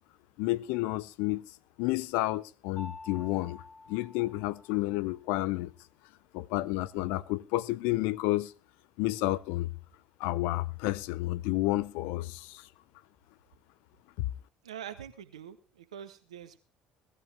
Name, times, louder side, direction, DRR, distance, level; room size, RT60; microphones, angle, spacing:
voice 1, 0.4-1.4 1.8-3.6 3.9-5.7 6.3-8.5 9.0-9.7 10.2-12.6, left 18 dB, 70° left, 0.6 m, -30 dB
Mallet percussion, 2.8-5.3, left 3 dB, 35° left, 2.5 m, -49 dB
voice 2, 14.6-16.6, right 9 dB, 85° right, 1.2 m, -44 dB
18.0 x 13.0 x 3.4 m
hypercardioid pair, 55°, 3 cm